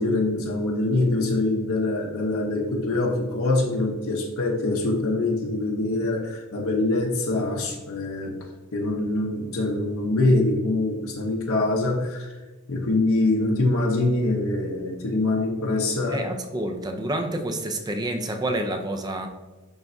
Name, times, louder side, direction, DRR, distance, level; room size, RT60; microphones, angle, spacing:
voice 1, 0.0-12.4 12.7-16.2, left 2 dB, 70° left, 0 dB, 0.8 m, -24 dB
voice 2, 16.1-19.3, right 1 dB, 20° right, 6 dB, 0.5 m, -28 dB
10.5 x 3.5 x 2.7 m, 1.2 s
head